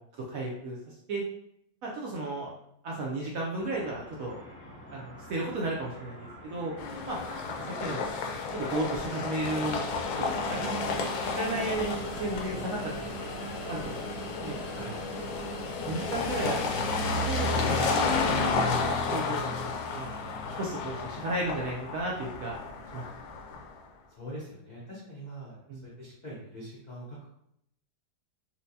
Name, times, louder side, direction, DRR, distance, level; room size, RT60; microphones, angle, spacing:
voice 1, 0.3-1.2 1.8-2.5 2.8-4.4 4.9-6.7 7.1-7.2 7.8-8.0 8.5-9.8 10.1-10.6 11.3-13.3 13.7-14.6 15.9-16.6 17.2-17.9 18.5-18.6 19.1-19.4 19.6-20.1 20.6-22.5 22.9-23.0 25.7-25.8, right 2 dB, 70° right, -3 dB, 0.8 m, -34 dB
sound 1, 3.6-18.0, left 1 dB, 40° left, 0.8 m, -47 dB
sound 2, 6.8-23.8, left 3 dB, 85° left, 1.3 m, -31 dB
voice 2, 24.1-27.2, equal, 65° left, -6 dB, 0.4 m, -43 dB
4.3 x 2.2 x 2.7 m, 0.76 s
omnidirectional pair, 1.9 m